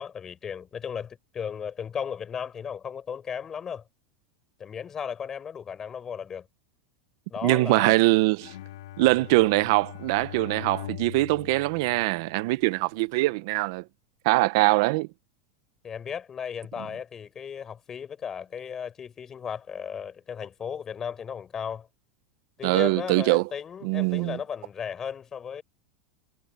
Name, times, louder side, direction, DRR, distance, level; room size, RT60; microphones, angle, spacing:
voice 1, 0.0-3.8 4.6-6.5 7.3-8.0 9.3-9.5 15.8-21.9 22.6-25.6, left 7 dB, 20° left, 6.6 m, -35 dB
voice 2, 7.4-8.5 9.0-13.8 14.2-15.1 22.6-23.4 23.8-24.4, right 21 dB, 55° right, 0.6 m, -23 dB
Bowed string instrument, 8.4-12.8, left 13 dB, 85° left, 2.1 m, -42 dB
supercardioid pair, 155°, 2 cm